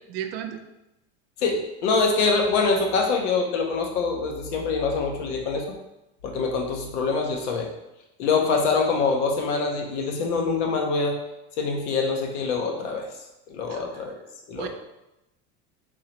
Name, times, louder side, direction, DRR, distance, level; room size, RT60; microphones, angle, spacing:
voice 1, 0.1-0.6 13.7-14.1 14.5-14.7, right 10 dB, 65° right, 7 dB, 0.5 m, -34 dB
voice 2, 1.4-5.6 6.2-7.7 8.2-11.2 11.6-13.1 13.5-14.1 14.5-14.7, left 4 dB, 85° left, 2 dB, 0.9 m, -24 dB
3.7 x 2.8 x 3.0 m, 0.93 s
supercardioid pair, 140°, 34 cm